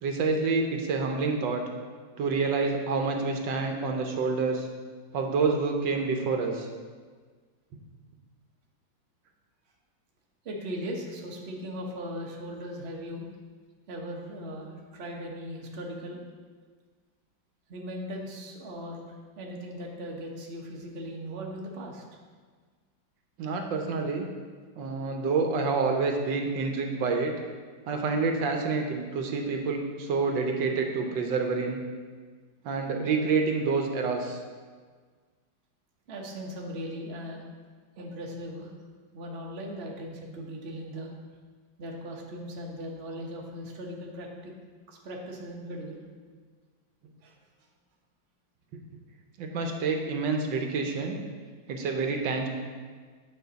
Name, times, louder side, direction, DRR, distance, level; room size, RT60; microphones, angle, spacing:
voice 1, 0.0-1.6 2.2-4.7 5.1-6.7 23.4-24.3 24.8-27.3 27.9-31.8 32.6-34.4 49.4-51.2 51.7-52.5, right 4 dB, 75° right, 3 dB, 1.4 m, -28 dB
voice 2, 10.4-13.2 13.9-16.2 17.7-22.0 36.1-37.4 38.0-38.7 39.1-41.1 41.8-44.5 44.9-46.0 47.2-47.3, equal, 40° right, -1 dB, 1.1 m, -38 dB
9.1 x 6.2 x 4.0 m, 1.5 s
omnidirectional pair, 2.0 m